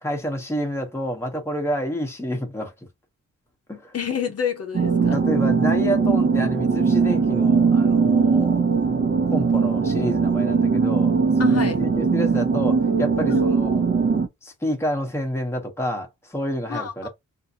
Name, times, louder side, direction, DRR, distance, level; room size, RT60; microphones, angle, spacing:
voice 1, 0.0-2.7 3.7-3.9 5.0-8.6 9.3-13.8 14.4-17.1, equal, 10° left, 0.9 m, -28 dB
voice 2, 3.9-5.2 11.4-11.8 13.3-13.4 16.7-17.1, left 7 dB, 50° left, 0.7 m, -28 dB
sound 1, 4.7-14.3, right 5 dB, 35° right, 0.6 m, -20 dB
3.5 x 2.6 x 2.7 m
wide cardioid pair, 145°, 32 cm